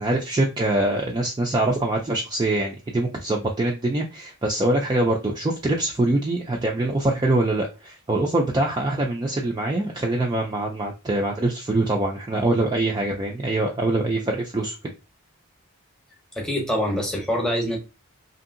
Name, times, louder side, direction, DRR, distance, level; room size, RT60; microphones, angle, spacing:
voice 1, 0.0-14.7, right 2 dB, 20° right, 0.3 m, -24 dB
voice 2, 16.3-17.8, equal, 5° left, 0.7 m, -25 dB
2.7 x 2.7 x 2.5 m
head